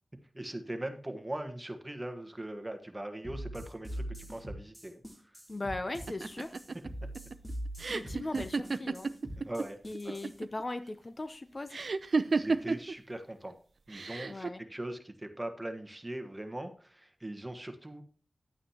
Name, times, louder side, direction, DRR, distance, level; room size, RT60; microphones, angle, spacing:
voice 1, 0.3-5.3 9.4-10.2 12.3-13.6 13.9-18.0, right 1 dB, 20° right, 6 dB, 1.4 m, -40 dB
sound 1, 3.2-10.3, equal, 5° left, 2.9 m, -42 dB
voice 2, 5.5-6.6 7.9-9.1 9.9-11.8 14.3-14.6, left 2 dB, 40° left, 10 dB, 0.7 m, -38 dB
sound 2, 6.1-9.7 9.9-10.6 11.7-12.9 13.9-14.5, right 4 dB, 70° right, 0.5 m, -32 dB
11.5 x 8.7 x 2.9 m, 0.43 s
wide cardioid pair, 60°, 0 cm